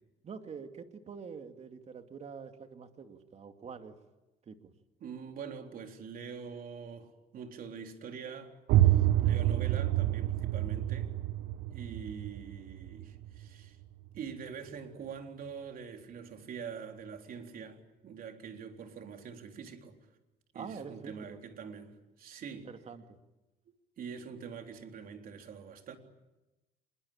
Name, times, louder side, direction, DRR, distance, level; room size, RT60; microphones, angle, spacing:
voice 1, 0.2-4.0 4.5-4.7 20.5-21.4 22.6-23.2, right 6 dB, 40° right, 2.6 m, -46 dB
voice 2, 5.0-11.2 11.7-13.8 14.1-20.0 20.5-22.7 24.0-26.0, right 6 dB, 60° right, 3.8 m, -44 dB
sound 1, 8.7-14.3, right 14 dB, 80° right, 1.1 m, -28 dB
26.5 x 22.0 x 8.9 m
cardioid pair, 110°, 17 cm